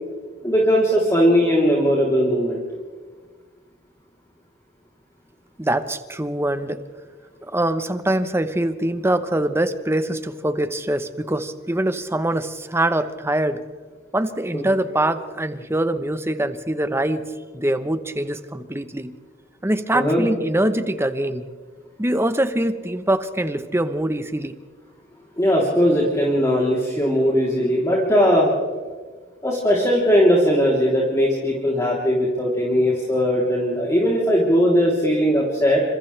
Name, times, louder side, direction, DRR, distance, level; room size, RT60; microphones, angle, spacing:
voice 1, 0.4-2.6 14.5-14.6 19.9-20.3 25.4-28.5 29.4-35.8, equal, 15° left, -5 dB, 3.4 m, -19 dB
voice 2, 5.6-6.8 7.4-13.6 14.1-17.2 17.5-19.1 19.6-21.5 22.0-24.5, right 1 dB, 15° right, 10 dB, 1.0 m, -23 dB
28.5 x 26.5 x 3.4 m, 1.5 s
head